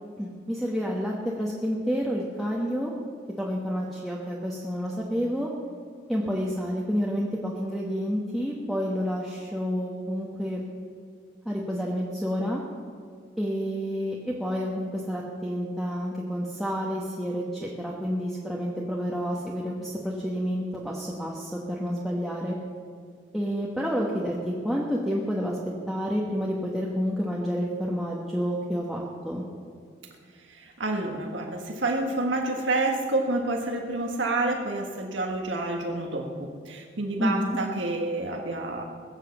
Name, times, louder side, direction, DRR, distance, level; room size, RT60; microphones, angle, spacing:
voice 1, 0.2-2.9 3.4-5.5 6.1-10.6 11.4-12.6 13.4-22.5 23.3-25.6 25.9-29.4 37.2-37.6, equal, ahead, -4 dB, 1.2 m, -29 dB
voice 2, 30.6-38.8, right 2 dB, 80° right, 1 dB, 1.5 m, -28 dB
20.5 x 7.4 x 7.0 m, 2.2 s
head